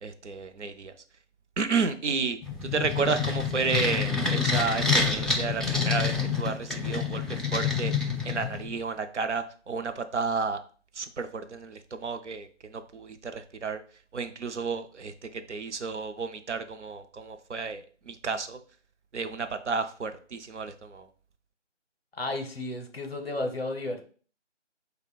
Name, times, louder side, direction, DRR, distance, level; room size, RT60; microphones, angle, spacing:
voice 1, 0.0-0.9 1.6-10.6 10.9-13.8 14.1-18.6 19.1-21.1, right 4 dB, 70° right, 8 dB, 0.5 m, -32 dB
sound 1, 2.4-8.8, left 5 dB, ahead, 0.3 m, -27 dB
voice 2, 22.2-24.0, left 2 dB, 55° left, 4 dB, 0.6 m, -33 dB
3.1 x 2.1 x 4.1 m, 0.42 s
figure-of-eight pair, 160°, 36 cm